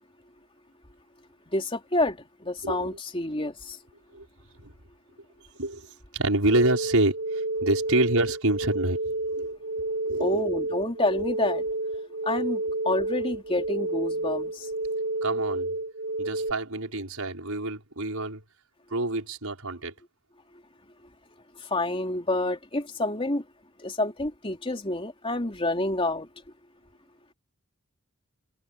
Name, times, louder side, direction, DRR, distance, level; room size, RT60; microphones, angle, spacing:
voice 1, 1.5-2.2 2.4-3.8 10.2-11.6 12.2-14.7 21.7-23.4 23.8-26.3, left 2 dB, 25° left, 3.4 m, -28 dB
voice 2, 2.6-3.0 4.1-4.3 4.6-4.7 5.6-9.5 10.1-10.5 12.4-12.5 15.2-15.8 16.2-18.4 18.9-19.9, right 2 dB, 85° right, 5.9 m, -27 dB
sound 1, 6.5-16.5, right 2 dB, 50° right, 0.7 m, -30 dB
head